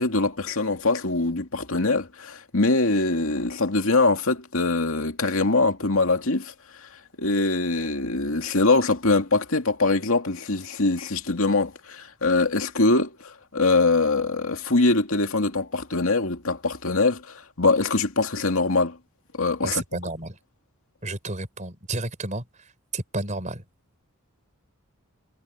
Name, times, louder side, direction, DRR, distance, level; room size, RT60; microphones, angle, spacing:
voice 1, 0.0-6.5 7.2-19.0 19.4-19.8, left 3 dB, 65° left, 2.5 m, -23 dB
voice 2, 19.6-20.4 21.0-22.4 22.9-23.6, right 2 dB, 35° right, 5.0 m, -31 dB
head